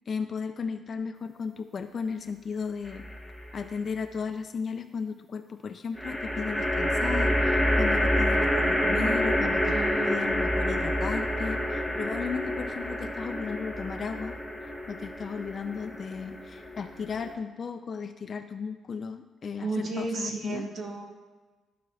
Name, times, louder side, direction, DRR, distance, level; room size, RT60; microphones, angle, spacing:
voice 1, 0.1-3.1 3.4-9.8 10.1-20.7, left 5 dB, 45° left, 8 dB, 0.4 m, -35 dB
sound 1, 2.9-3.5 6.0-17.3, equal, ahead, 1.1 m, -28 dB
voice 2, 9.7-10.3 19.6-21.1, right 3 dB, 55° right, 1 dB, 1.2 m, -34 dB
14.0 x 4.7 x 2.3 m, 1.3 s
cardioid pair, 90°, 0 cm